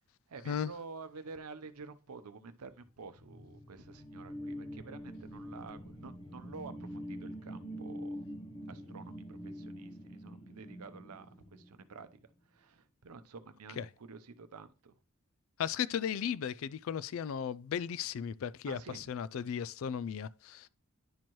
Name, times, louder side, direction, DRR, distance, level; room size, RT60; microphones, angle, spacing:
voice 1, 0.3-8.2 8.7-12.2 12.5-14.9 18.6-19.0, right 4 dB, 90° right, 0.7 m, -50 dB
sound 1, 2.9-12.1, equal, 25° left, 0.7 m, -45 dB
voice 2, 15.6-20.7, left 8 dB, 65° left, 0.3 m, -36 dB
10.5 x 4.5 x 3.0 m
head